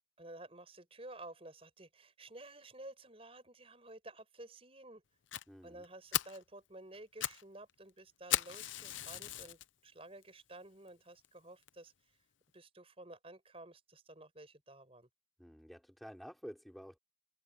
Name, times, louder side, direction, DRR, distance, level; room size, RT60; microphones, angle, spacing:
voice 1, 0.2-5.0 5.6-12.2 12.5-15.1, right 2 dB, 30° right, 5.9 m, -53 dB
Fire, 5.3-5.4 5.8-5.9 6.1-6.4 6.9-7.4 7.7-7.8 8.3-9.6 10.2-10.3 10.9-11.0 11.2-11.3 11.7-11.8, left 13 dB, 85° left, 0.7 m, -36 dB
voice 2, 5.5-5.8 15.4-17.0, equal, ahead, 4.2 m, -50 dB
open air
head